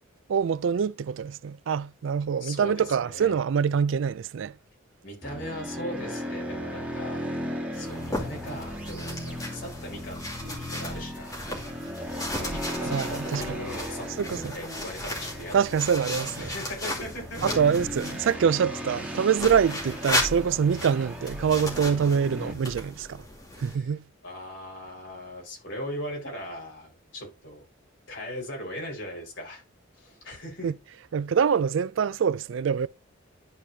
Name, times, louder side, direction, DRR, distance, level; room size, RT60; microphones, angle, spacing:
voice 1, 0.3-4.5 12.8-13.6 14.2-14.5 15.5-16.5 17.4-23.2 23.6-24.0 30.6-30.7 31.1-32.9, right 7 dB, 70° right, 0.3 m, -25 dB
voice 2, 2.4-3.4 5.0-7.2 7.7-11.7 12.5-15.9 16.4-17.5 23.7-23.9 24.2-27.6 28.1-29.6 30.0-30.7, equal, 65° left, 4.5 m, -39 dB
sound 1, 5.2-22.5, equal, 5° right, 1.8 m, -37 dB
sound 2, 7.7-18.3 19.3-23.8, left 1 dB, 15° left, 2.4 m, -35 dB
12.0 x 4.8 x 2.7 m
head